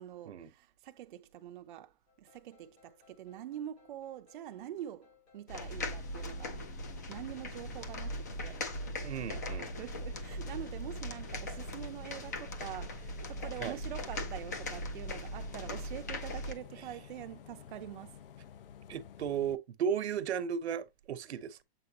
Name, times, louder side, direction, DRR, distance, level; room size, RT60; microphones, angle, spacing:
voice 1, 0.0-6.6 7.1-8.6 9.6-18.2, right 11 dB, 50° right, 0.5 m, -45 dB
sound 1, 2.1-13.7, left 2 dB, 90° left, 3.8 m, -65 dB
sound 2, 5.5-16.5, left 1 dB, 20° left, 0.3 m, -40 dB
Bus, 5.7-19.6, left 9 dB, 60° left, 0.6 m, -51 dB
voice 2, 9.0-9.7 13.6-13.8 18.9-21.6, right 8 dB, 85° right, 1.0 m, -35 dB
7.8 x 4.5 x 2.9 m
hypercardioid pair, 165°, 32 cm